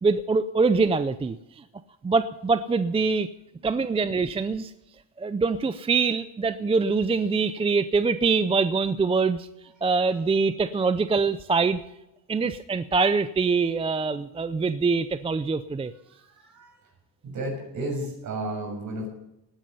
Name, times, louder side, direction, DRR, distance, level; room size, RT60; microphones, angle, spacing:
voice 1, 0.0-1.6 2.0-3.3 3.6-4.7 5.2-9.5 9.8-11.8 12.3-15.9, right 4 dB, 15° right, 11 dB, 0.4 m, -24 dB
voice 2, 16.1-16.8 17.2-19.1, right 1 dB, 50° right, 2 dB, 6.3 m, -33 dB
18.5 x 10.5 x 5.6 m, 0.89 s
cardioid pair, 125°, 39 cm